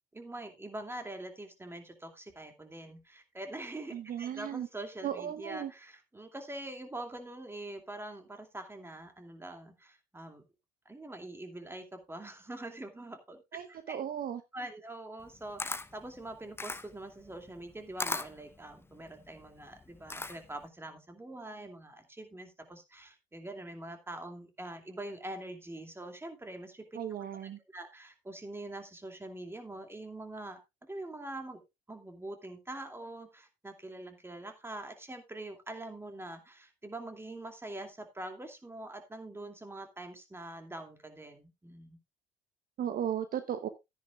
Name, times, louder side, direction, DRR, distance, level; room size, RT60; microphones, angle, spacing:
voice 1, 0.1-10.4 10.8-13.4 13.7-14.0 14.5-26.8 27.1-27.3 27.7-31.6 31.9-42.0, right 1 dB, 10° right, 5 dB, 2.6 m, -44 dB
voice 2, 3.9-4.7 5.0-5.7 13.5-14.4 26.9-27.6 42.8-43.7, right 9 dB, 50° right, 10 dB, 1.0 m, -36 dB
Camera, 15.2-20.7, left 2 dB, 10° left, 0.8 m, -39 dB
13.5 x 10.0 x 2.4 m, 0.23 s
hypercardioid pair, 65°, 20 cm